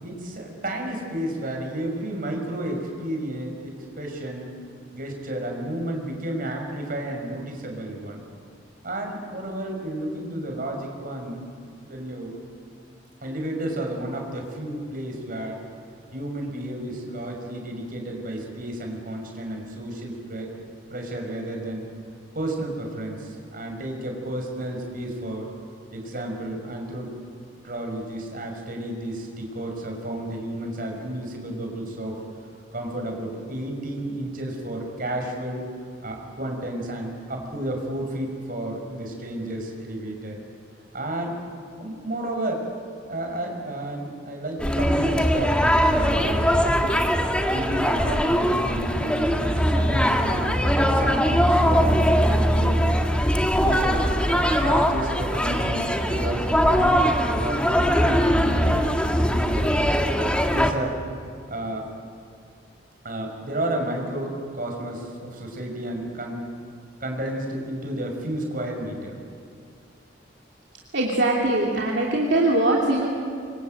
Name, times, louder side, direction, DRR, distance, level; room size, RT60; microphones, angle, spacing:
voice 1, 0.0-3.7 4.0-4.5 4.9-8.2 8.8-11.5 11.8-12.3 13.2-15.6 16.1-20.6 20.9-21.8 22.3-25.5 25.9-27.1 27.6-32.2 32.7-35.6 36.0-40.4 40.9-41.4 41.8-42.6 43.1-47.0 47.5-50.5 50.9-53.1 53.6-60.0 60.5-61.0 61.5-61.9 63.0-66.4 67.0-69.2, right 1 dB, 50° right, 2 dB, 5.8 m, -32 dB
sound 1, 44.6-60.7, equal, 5° left, 1.7 m, -21 dB
voice 2, 70.9-73.1, right 2 dB, 65° right, -2 dB, 2.9 m, -21 dB
26.5 x 23.5 x 9.0 m, 2.3 s
head